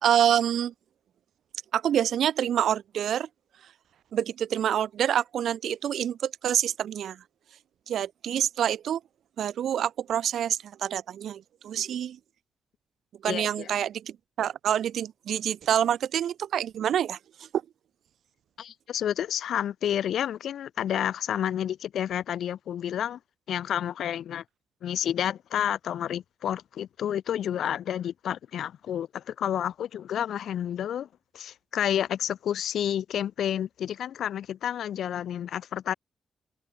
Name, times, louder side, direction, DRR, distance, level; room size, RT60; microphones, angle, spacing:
voice 1, 0.0-0.7 1.7-3.3 4.1-7.2 7.9-9.0 9.4-12.2 13.2-17.2, right 10 dB, 80° right, 0.6 m, -27 dB
voice 2, 13.2-13.7 18.6-23.2 23.5-24.4 24.8-31.1 31.3-35.9, left 10 dB, 85° left, 1.1 m, -30 dB
open air
wide cardioid pair, 180°, 0 cm